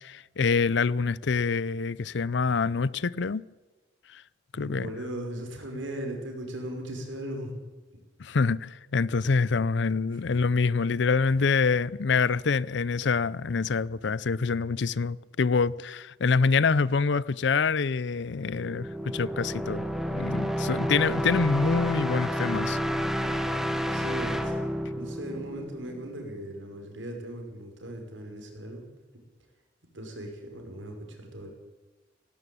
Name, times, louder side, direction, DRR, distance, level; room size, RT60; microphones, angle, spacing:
voice 1, 0.0-3.4 4.1-4.2 4.6-4.9 8.2-19.8 20.1-22.8, left 4 dB, 65° left, 0.5 m, -26 dB
voice 2, 4.5-7.5 7.9-8.0 10.1-10.4 11.4-11.7 23.9-24.6 25.0-28.9 29.9-31.5, right 1 dB, 80° right, 5.5 m, -38 dB
sound 1, 18.5-26.2, equal, ahead, 1.3 m, -30 dB
18.0 x 17.0 x 8.6 m
head